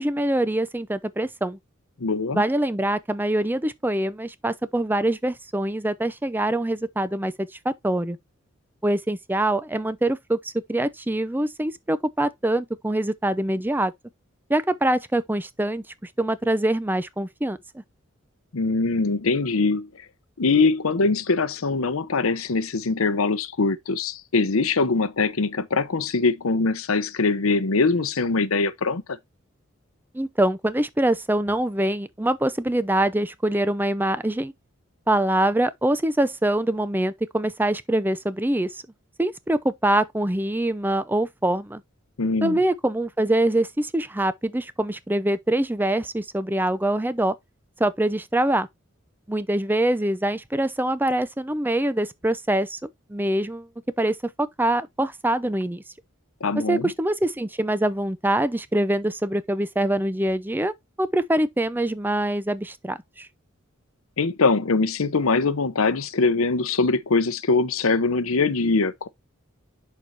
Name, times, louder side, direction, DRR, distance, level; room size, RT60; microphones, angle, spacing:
voice 1, 0.0-1.6 2.3-8.2 8.8-13.9 14.5-15.8 16.2-17.8 30.1-34.5 35.1-38.8 39.2-41.8 42.4-47.4 47.8-48.7 49.3-53.7 54.0-55.8 56.7-63.3, right 1 dB, 10° right, 0.5 m, -24 dB
voice 2, 2.0-2.4 18.5-19.9 20.4-29.2 42.2-42.6 56.4-56.9 64.2-69.1, left 3 dB, 85° left, 0.8 m, -22 dB
11.0 x 4.6 x 2.6 m
head